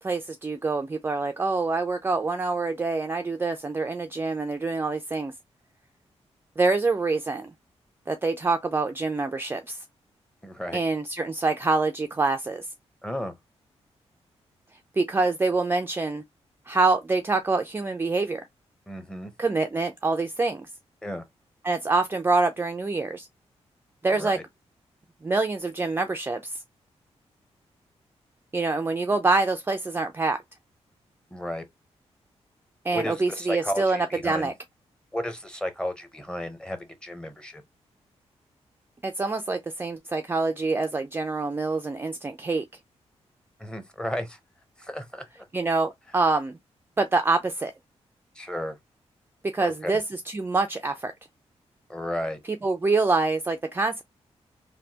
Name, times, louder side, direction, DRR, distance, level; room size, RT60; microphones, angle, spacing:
voice 1, 0.0-5.3 6.6-7.5 8.1-9.8 10.7-12.7 15.0-16.2 16.7-18.5 19.4-20.7 21.6-23.3 24.0-24.4 25.2-26.4 28.5-30.4 32.8-34.5 39.0-42.6 45.5-46.6 47.0-47.7 49.5-51.1 52.6-54.0, right 3 dB, 20° right, 0.3 m, -25 dB
voice 2, 10.4-10.8 13.0-13.3 18.9-19.3 21.0-21.2 24.1-24.4 31.3-31.6 32.9-34.5 35.1-37.6 43.6-44.4 44.8-45.5 48.4-48.8 49.6-49.9 51.9-52.4, left 1 dB, 5° left, 0.7 m, -33 dB
3.2 x 2.1 x 2.8 m
cardioid pair, 80°, 11 cm